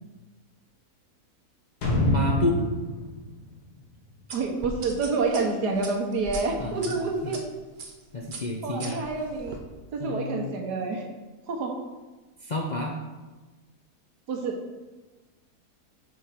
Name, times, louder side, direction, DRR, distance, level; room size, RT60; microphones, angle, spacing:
sound 1, 1.8-4.6 4.9-5.0, left 1 dB, 90° left, 2.1 m, -27 dB
voice 1, 2.0-2.6 6.6-7.3 8.1-9.0 10.0-10.5 12.4-12.9, left 2 dB, 45° left, -1 dB, 0.5 m, -30 dB
sound 2, 4.3-7.4 7.8-8.0 8.3-9.6, right 3 dB, 40° right, 0.8 m, -39 dB
voice 2, 4.3-7.4 8.6-9.6 9.9-11.1 11.5-11.8 14.3-14.6, right 3 dB, 85° right, 2 dB, 1.6 m, -28 dB
6.3 x 4.8 x 5.6 m, 1.2 s
omnidirectional pair, 1.7 m